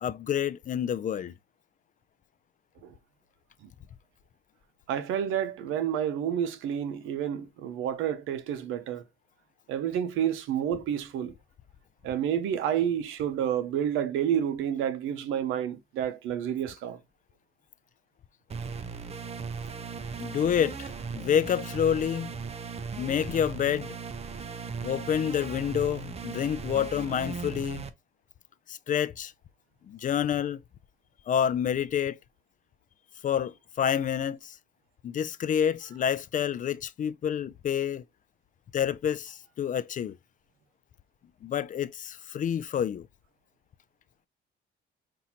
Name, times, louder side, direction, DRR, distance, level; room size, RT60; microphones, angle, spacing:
voice 1, 0.0-1.3 20.2-22.4 23.0-23.9 24.8-27.8 28.7-29.3 29.9-30.6 31.3-32.2 33.2-34.6 35.0-38.0 38.7-40.2 41.4-43.1, left 9 dB, 40° left, 0.4 m, -28 dB
voice 2, 4.9-9.0 9.7-11.3 12.0-17.0, right 9 dB, 90° right, 0.7 m, -29 dB
sound 1, 18.5-27.9, right 5 dB, 30° right, 0.6 m, -37 dB
5.6 x 2.6 x 2.9 m
cardioid pair, 95°, 20 cm